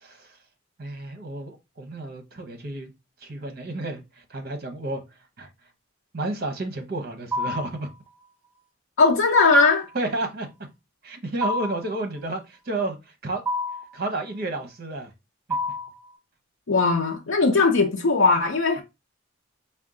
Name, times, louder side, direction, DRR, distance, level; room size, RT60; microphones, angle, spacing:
voice 1, 0.8-2.9 3.2-4.0 4.3-5.0 5.4-5.5 6.1-7.9 9.9-10.5 11.0-13.0 13.2-13.4 13.9-15.1 15.5-15.6, right 2 dB, 50° right, 0.8 m, -31 dB
sound 1, 7.3-7.8 9.4-9.8 11.4-11.9 13.4-13.9 15.5-16.0, left 1 dB, 10° right, 0.7 m, -28 dB
voice 2, 9.0-9.9 16.7-18.8, left 4 dB, 85° left, 0.6 m, -19 dB
4.3 x 2.2 x 3.7 m
head